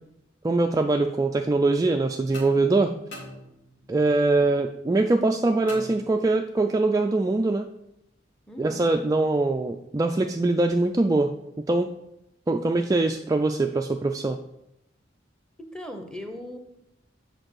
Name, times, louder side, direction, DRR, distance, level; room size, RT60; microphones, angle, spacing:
voice 1, 0.4-2.9 3.9-7.7 8.6-11.3 11.7-11.9 12.5-14.4, right 2 dB, 20° right, 4 dB, 0.3 m, -23 dB
sound 1, 2.3-4.0 5.7-6.6, left 1 dB, 85° left, 2.5 m, -43 dB
voice 2, 8.5-8.9 15.6-16.6, equal, 5° left, 5 dB, 0.9 m, -38 dB
7.8 x 4.6 x 6.1 m, 0.86 s
head